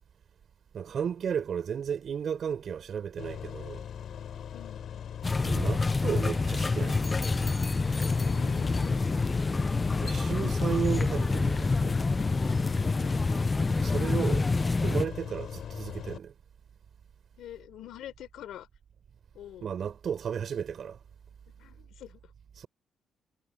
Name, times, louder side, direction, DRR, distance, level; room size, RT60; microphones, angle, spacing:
voice 1, 0.7-3.8 5.4-7.1 10.0-12.0 13.8-14.5 14.8-16.3 19.6-21.0 22.6-22.7, right 7 dB, 55° right, 4.4 m, -33 dB
sound 1, 3.2-16.2, left 9 dB, 65° left, 6.7 m, -39 dB
voice 2, 4.5-4.9 8.2-9.0 13.0-13.3 17.4-18.7 19.3-19.7 21.5-22.3, left 12 dB, 80° left, 4.1 m, -46 dB
sound 2, 5.2-15.0, left 3 dB, 25° left, 0.5 m, -27 dB
cardioid pair, 90°, 0 cm